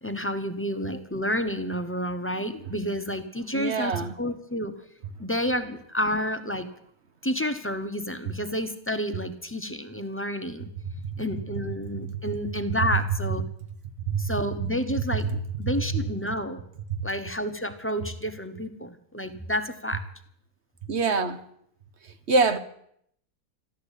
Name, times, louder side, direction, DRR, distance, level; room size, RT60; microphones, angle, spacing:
voice 1, 0.0-4.7 5.2-6.7 7.2-10.7 11.2-13.4 14.2-16.6 17.0-20.0, equal, 10° left, 0.9 m, -30 dB
voice 2, 3.5-4.1 10.9-11.0 14.1-14.2 15.6-15.7 16.9-17.0 20.9-21.4 22.3-22.6, right 4 dB, 45° right, 1.3 m, -24 dB
14.0 x 12.0 x 8.3 m
omnidirectional pair, 1.8 m